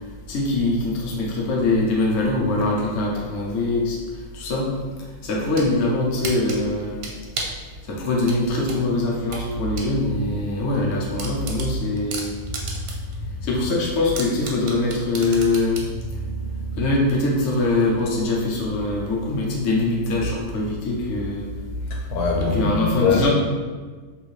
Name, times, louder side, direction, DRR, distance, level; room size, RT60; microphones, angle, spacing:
voice 1, 0.3-4.0 4.3-4.7 5.2-7.0 7.9-12.3 13.4-15.9 16.8-21.5 22.4-23.3, left 2 dB, 70° left, -3 dB, 0.6 m, -23 dB
sound 1, 5.3-5.7 6.2-7.6 8.3-9.9 10.3-10.4 10.7-10.8 11.2-13.1 13.5-13.6 14.2-15.9, right 4 dB, 70° right, 0.8 m, -33 dB
voice 2, 16.1-16.8 21.9-23.3, left 3 dB, 90° left, 0 dB, 1.4 m, -24 dB
3.2 x 2.6 x 3.1 m, 1.5 s
omnidirectional pair, 2.1 m